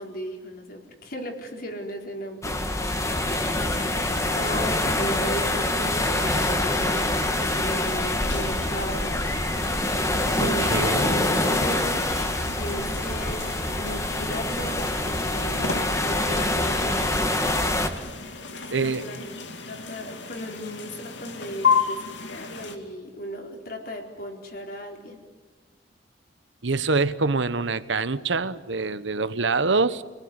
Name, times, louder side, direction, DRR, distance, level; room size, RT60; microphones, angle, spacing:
voice 1, 0.0-2.6 4.3-9.2 10.3-12.0 12.5-17.2 18.6-25.2, equal, 50° left, 2 dB, 4.3 m, -36 dB
sound 1, 2.4-17.9, left 1 dB, 15° left, 1.9 m, -25 dB
sound 2, 3.2-22.8, left 5 dB, 80° left, 2.7 m, -34 dB
voice 2, 10.4-11.3 18.7-19.1 26.6-30.0, right 3 dB, 85° right, 14 dB, 1.1 m, -25 dB
29.0 x 19.5 x 9.9 m, 1.3 s
head